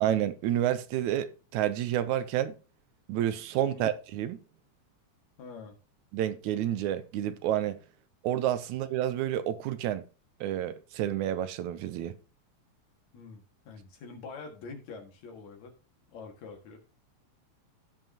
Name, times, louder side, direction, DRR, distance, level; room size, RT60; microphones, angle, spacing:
voice 1, 0.0-2.6 3.1-4.4 6.1-7.8 8.2-10.0 10.4-12.1, right 11 dB, 85° right, 2.1 m, -29 dB
voice 2, 5.4-5.8 13.1-15.7 16.1-16.8, left 4 dB, 70° left, 3.2 m, -45 dB
16.0 x 5.7 x 2.9 m
omnidirectional pair, 3.3 m